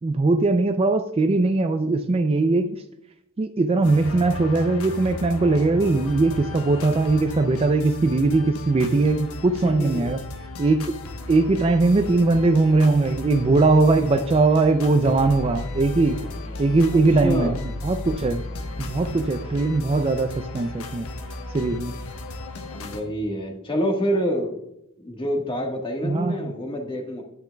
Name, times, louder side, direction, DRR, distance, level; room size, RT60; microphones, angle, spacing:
voice 1, 0.0-2.8 3.4-10.2 10.6-10.8 11.3-16.2 16.6-18.4 18.8-21.1 21.5-22.0 26.0-26.5, right 3 dB, 25° right, 8 dB, 0.4 m, -20 dB
sound 1, 3.8-23.0, left 2 dB, 75° left, 1.1 m, -35 dB
voice 2, 9.6-10.1 16.9-17.6 22.7-24.6 25.0-27.2, equal, 25° left, 1 dB, 1.4 m, -27 dB
9.9 x 8.9 x 2.3 m, 0.81 s
head